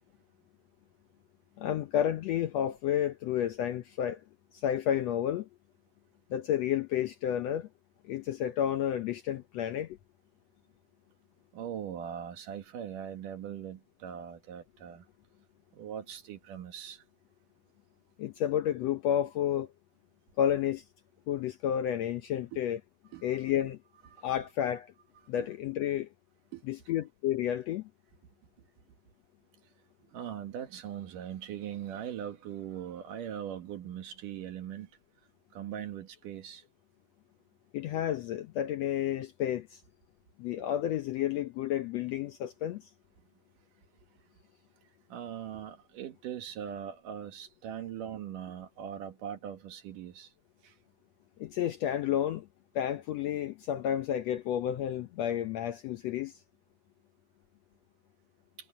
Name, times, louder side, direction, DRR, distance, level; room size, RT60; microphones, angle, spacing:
voice 1, 1.6-4.2 4.5-5.5 6.3-7.7 8.0-10.0 18.2-19.7 20.4-20.8 21.3-22.8 23.2-23.8 24.2-24.9 25.3-26.1 26.7-27.9 37.7-39.8 40.4-42.9 51.4-52.5 52.7-56.4, left 10 dB, 75° left, 1.6 m, -31 dB
voice 2, 11.5-15.0 15.7-17.0 22.5-22.6 23.1-23.3 24.2-24.5 25.4-25.5 26.5-26.6 30.1-34.9 35.5-36.6 45.1-50.3 50.6-50.7, right 9 dB, 75° right, 3.2 m, -40 dB
omnidirectional pair, 3.8 m